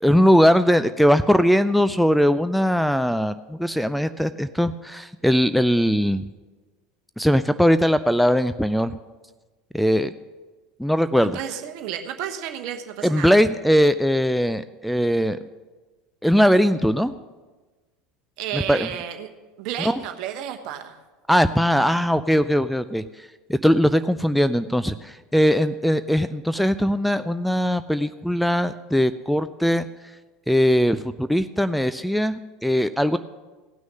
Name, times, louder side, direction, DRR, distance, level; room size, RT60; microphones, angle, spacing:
voice 1, 0.0-6.2 7.2-8.9 9.7-10.1 10.8-11.4 13.0-15.4 16.2-17.1 18.5-18.9 19.8-20.0 21.3-29.9 30.5-33.2, equal, ahead, 12 dB, 0.4 m, -20 dB
voice 2, 11.2-13.3 18.4-19.3 19.6-21.0, right 10 dB, 55° right, 6 dB, 1.1 m, -32 dB
17.0 x 6.2 x 6.3 m, 1.3 s
figure-of-eight pair, 75°, 0 cm